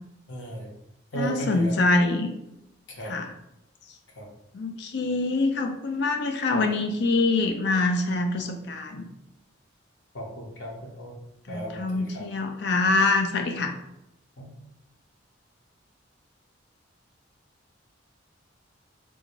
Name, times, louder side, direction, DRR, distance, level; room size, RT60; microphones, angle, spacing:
voice 1, 0.3-0.7 1.1-1.7 2.9-3.1 4.2-4.3 10.1-11.1 11.5-12.2 14.4-14.5, right 1 dB, 85° left, 0 dB, 0.9 m, -35 dB
voice 2, 1.1-2.3 3.0-3.3 4.5-9.1 11.5-13.7, left 3 dB, 60° left, 5 dB, 0.4 m, -25 dB
3.5 x 2.6 x 2.9 m, 0.87 s
head